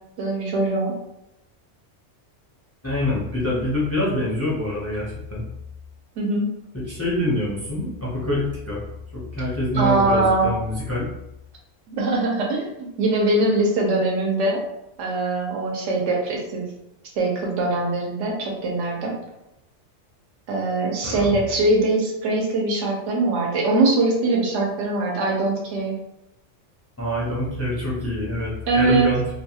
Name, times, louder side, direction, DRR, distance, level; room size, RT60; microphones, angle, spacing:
voice 1, 0.2-0.9 6.2-6.5 9.7-10.5 11.9-14.6 15.0-16.6 17.2-19.2 20.5-26.0 28.7-29.1, right 2 dB, 75° right, -1 dB, 1.0 m, -22 dB
voice 2, 2.8-5.4 6.7-8.8 9.1-11.1 21.0-21.4 27.0-29.2, left 1 dB, 20° left, -6 dB, 0.4 m, -25 dB
2.6 x 2.2 x 2.8 m, 0.87 s
omnidirectional pair, 1.3 m